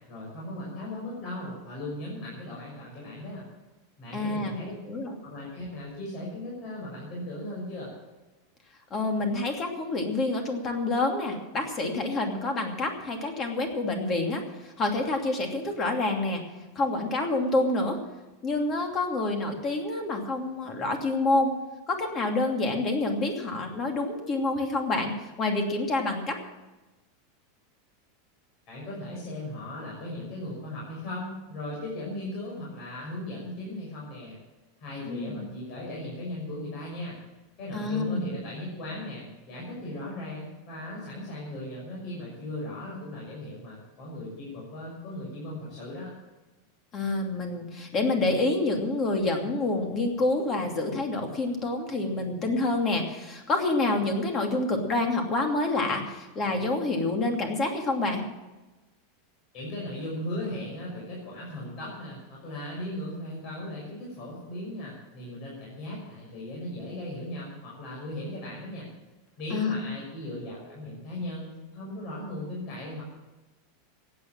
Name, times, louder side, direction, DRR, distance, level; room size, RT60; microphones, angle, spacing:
voice 1, 0.1-3.5 4.0-4.7 5.2-7.9 28.7-34.4 34.8-37.2 37.6-46.1 59.5-68.9 69.4-73.0, left 1 dB, 40° left, -5 dB, 6.1 m, -37 dB
voice 2, 4.1-5.2 8.9-16.4 16.7-18.0 18.4-21.5 21.9-26.4 35.0-35.5 37.7-38.3 46.9-58.2 69.5-69.9, left 2 dB, 25° left, 3 dB, 2.7 m, -28 dB
15.0 x 9.7 x 7.5 m, 1.1 s
supercardioid pair, 155°, 0 cm